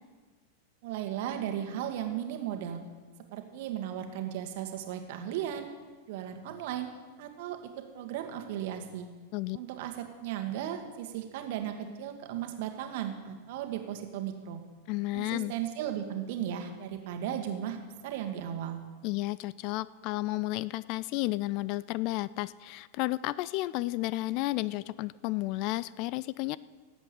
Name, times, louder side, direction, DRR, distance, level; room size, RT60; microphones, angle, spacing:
voice 1, 0.8-2.8 3.3-5.7 6.1-6.9 7.2-7.6 7.9-9.1 9.5-14.6 15.1-18.8, right 10 dB, 50° right, 6 dB, 1.7 m, -36 dB
voice 2, 14.9-15.5 19.0-26.6, left 19 dB, 45° left, 19 dB, 0.4 m, -32 dB
17.0 x 8.2 x 6.8 m, 1.4 s
figure-of-eight pair, 90°, 0 cm